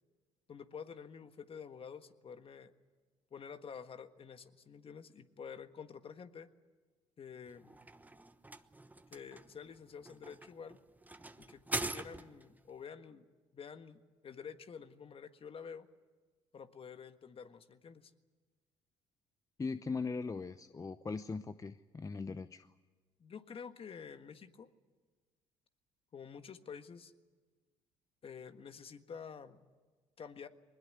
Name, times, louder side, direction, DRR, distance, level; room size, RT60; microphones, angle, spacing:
voice 1, 0.5-2.7 3.3-6.5 7.2-7.8 9.1-10.8 11.4-11.6 11.9-13.2 13.5-15.9 16.5-18.1 23.2-24.7 26.1-27.1 28.2-29.7 30.2-30.5, left 6 dB, 40° left, 9 dB, 1.6 m, -49 dB
sound 1, 7.5-12.6, right 2 dB, 10° right, 1.1 m, -43 dB
voice 2, 19.6-22.7, left 4 dB, 25° left, 12 dB, 0.8 m, -39 dB
21.5 x 20.5 x 9.7 m, 1.4 s
hypercardioid pair, 65°, 14 cm